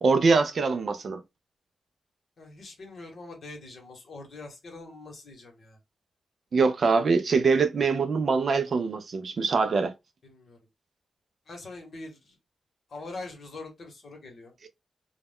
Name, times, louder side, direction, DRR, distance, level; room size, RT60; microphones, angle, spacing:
voice 1, 0.0-1.2 6.5-9.9, right 4 dB, 45° right, 0.3 m, -23 dB
voice 2, 2.4-5.8 10.2-10.6 11.5-12.4 12.9-14.5, left 2 dB, 45° left, 1.0 m, -43 dB
2.2 x 2.1 x 3.4 m
wide cardioid pair, 175°, 0 cm